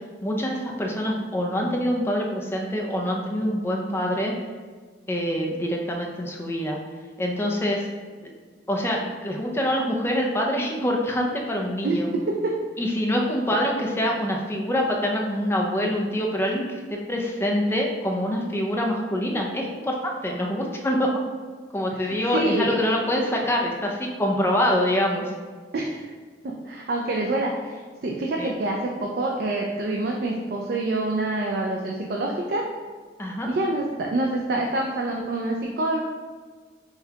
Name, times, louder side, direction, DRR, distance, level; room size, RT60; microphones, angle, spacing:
voice 1, 0.2-4.3 5.1-6.8 7.2-7.9 8.2-8.3 8.7-12.1 12.8-21.1 21.7-25.3 28.4-28.5 33.2-33.5, equal, 15° left, 0 dB, 0.4 m, -25 dB
voice 2, 22.0-22.8 25.7-26.1 26.4-32.6 33.5-36.0, right 2 dB, 60° right, 0 dB, 0.4 m, -26 dB
5.6 x 2.2 x 2.8 m, 1.5 s
head